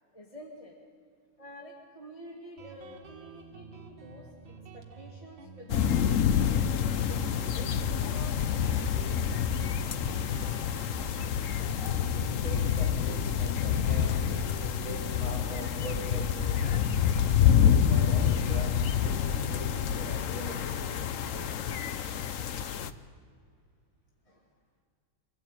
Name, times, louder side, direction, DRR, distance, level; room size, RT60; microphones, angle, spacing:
voice 1, 0.1-0.8 1.4-4.3 4.7-5.9 6.3-9.3 24.2-24.5, equal, 15° left, -1 dB, 2.1 m, -48 dB
Guitar, 2.6-19.8, right 4 dB, 65° right, 2.3 m, -49 dB
sound 1, 5.7-22.9, left 8 dB, 70° left, 0.7 m, -27 dB
sound 2, 7.3-18.2, right 2 dB, 45° right, 3.2 m, -47 dB
voice 2, 12.1-14.3 14.7-16.9 17.4-21.8, right 1 dB, 40° left, -4 dB, 7.5 m, -42 dB
25.5 x 16.5 x 9.0 m, 2.3 s
omnidirectional pair, 2.3 m